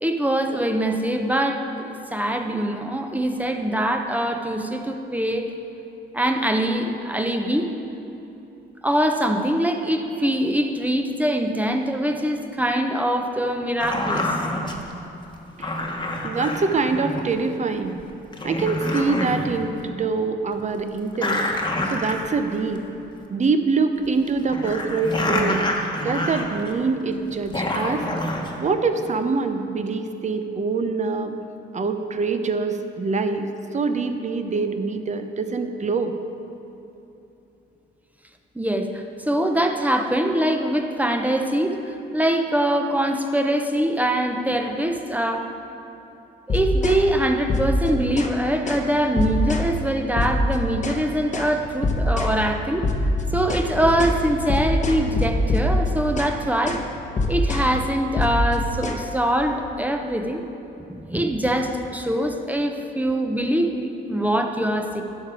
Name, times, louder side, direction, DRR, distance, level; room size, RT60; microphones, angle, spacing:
voice 1, 0.0-5.5 6.1-7.7 8.8-14.3 38.5-45.5 46.5-52.9 53.3-56.8 57.3-60.4 61.1-65.0, right 1 dB, 10° right, 4 dB, 0.8 m, -23 dB
sound 1, 13.8-14.8 15.6-17.3 18.0-18.1 18.3-19.5 19.8-19.9 21.1-22.6 22.8-22.9 24.0-26.9 27.3-28.5, left 1 dB, 20° left, 1.2 m, -27 dB
voice 2, 16.2-18.0 18.4-21.5 21.9-22.8 23.3-25.6 26.0-28.1 28.6-31.4 31.7-33.5 33.7-36.1, right 4 dB, 35° right, 8 dB, 0.7 m, -24 dB
sound 2, 46.5-47.0 47.5-48.4 48.7-48.9 49.2-49.7 50.2-51.0 51.3-51.5 51.8-52.4 52.8-56.4 56.7-56.9 57.2-57.7 58.2-59.0, left 1 dB, 35° left, 1.0 m, -24 dB
11.5 x 6.6 x 4.9 m, 3.0 s
cardioid pair, 90°, 20 cm